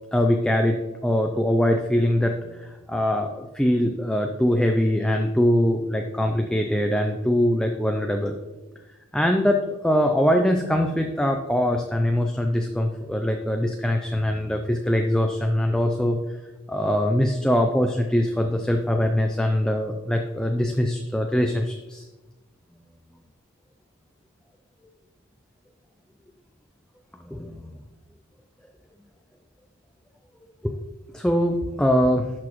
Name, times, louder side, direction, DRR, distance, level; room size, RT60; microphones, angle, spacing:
voice 1, 0.1-8.4 9.1-16.4 16.7-22.1 27.2-27.8 30.6-30.8 31.1-32.3, left 1 dB, 5° left, 3 dB, 0.4 m, -23 dB
10.5 x 6.2 x 3.0 m, 1.1 s
head